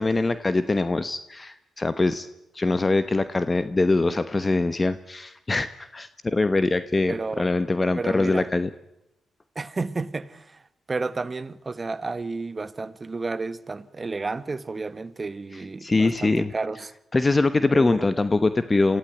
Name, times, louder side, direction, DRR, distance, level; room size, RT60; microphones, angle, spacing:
voice 1, 0.0-2.3 2.5-8.7 15.5-16.5 17.1-19.0, left 3 dB, 30° left, 1.0 m, -23 dB
voice 2, 7.1-7.5 7.9-8.5 9.5-10.6 10.9-16.9 17.7-18.1, right 3 dB, 35° right, 1.2 m, -31 dB
25.5 x 15.0 x 9.3 m
cardioid pair, 65°, 0 cm